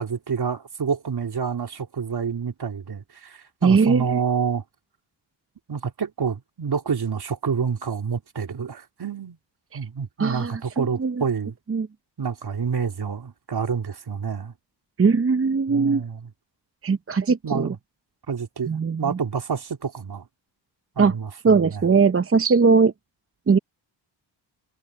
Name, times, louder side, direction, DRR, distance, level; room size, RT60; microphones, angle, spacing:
voice 1, 0.0-4.6 5.7-9.4 9.7-11.5 12.2-14.5 15.7-16.3 17.4-17.8 18.3-20.2 21.0-21.9, right 6 dB, 55° right, 3.6 m, -28 dB
voice 2, 3.6-4.2 10.2-11.1 11.7-11.9 15.0-16.0 16.8-17.7 18.7-19.2 21.0-21.1 21.4-22.9 23.5-23.6, right 5 dB, 30° right, 0.9 m, -20 dB
cardioid pair, 65°, 46 cm